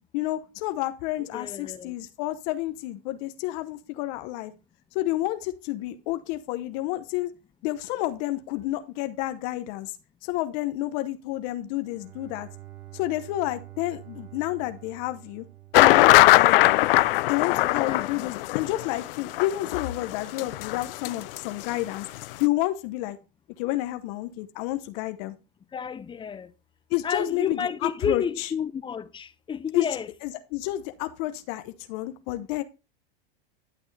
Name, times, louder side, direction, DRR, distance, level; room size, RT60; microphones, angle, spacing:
voice 1, 0.0-4.5 4.9-7.3 7.6-10.0 10.2-12.5 12.9-15.4 15.8-16.8 17.3-22.1 22.4-23.2 23.6-25.4 26.9-28.5 29.7-29.9 30.2-32.6, left 16 dB, 50° left, 0.9 m, -30 dB
voice 2, 1.3-1.9 17.5-18.3 25.7-26.5 27.0-30.1, left 7 dB, 15° left, 0.6 m, -31 dB
Bowed string instrument, 11.7-16.7, right 16 dB, 80° right, 3.6 m, -47 dB
sound 1, 15.7-21.4 21.6-21.7 22.2-22.3, left 18 dB, 70° left, 0.5 m, -20 dB
11.5 x 6.1 x 3.3 m
hypercardioid pair, 120°, 30 cm